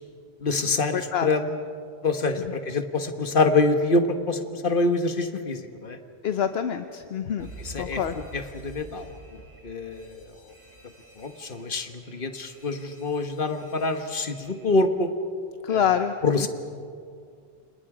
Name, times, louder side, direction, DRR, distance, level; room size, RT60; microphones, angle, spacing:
voice 1, 0.4-1.6 2.0-6.0 7.6-8.0 8.3-9.1 9.6-10.2 11.2-15.1 15.7-15.9 16.2-16.5, left 3 dB, 55° left, 7 dB, 1.6 m, -25 dB
voice 2, 0.9-1.3 6.2-7.5 7.8-8.1 15.6-16.5, left 8 dB, 75° left, 8 dB, 1.0 m, -26 dB
Alarm, 7.4-15.1, right 2 dB, 70° right, 3.4 m, -48 dB
29.5 x 26.5 x 5.0 m, 2.3 s
omnidirectional pair, 1.1 m